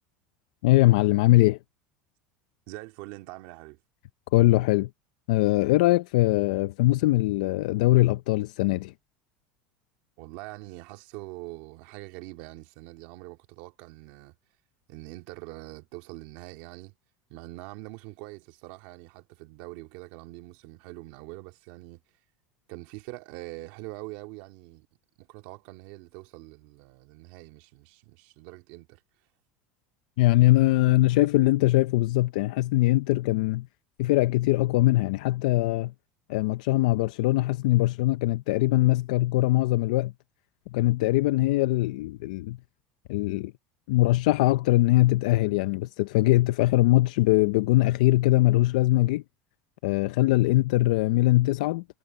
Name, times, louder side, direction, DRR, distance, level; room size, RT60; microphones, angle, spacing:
voice 1, 0.6-1.6 4.3-4.9 5.3-8.9 30.2-33.7 34.0-35.9 36.3-40.1 40.7-42.6 43.1-43.5 43.9-49.2 49.8-51.8, left 18 dB, 75° left, 0.5 m, -22 dB
voice 2, 2.7-3.8 10.2-14.3 14.9-17.0 17.3-22.0 22.7-24.9 25.2-29.0, right 20 dB, 60° right, 2.3 m, -43 dB
cardioid pair, 170°, 4 cm